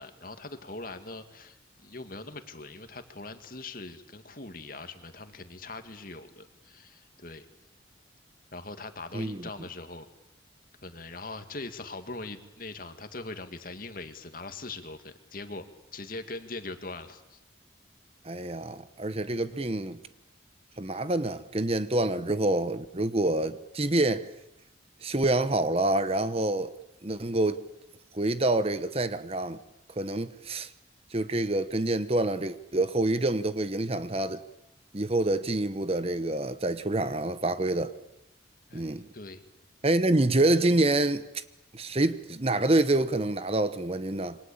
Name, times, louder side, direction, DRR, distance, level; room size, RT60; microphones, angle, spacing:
voice 1, 0.0-7.5 8.5-10.1 10.8-15.7 15.9-17.4 38.7-39.4, left 3 dB, 50° left, 2.2 m, -41 dB
voice 2, 9.1-9.4 18.2-20.0 20.8-24.3 25.0-26.7 27.0-27.6 28.1-29.6 30.0-30.7 31.1-34.4 34.9-37.9 38.7-39.1 39.8-41.4 41.7-44.4, right 2 dB, 30° right, 1.1 m, -27 dB
27.5 x 24.0 x 8.7 m
head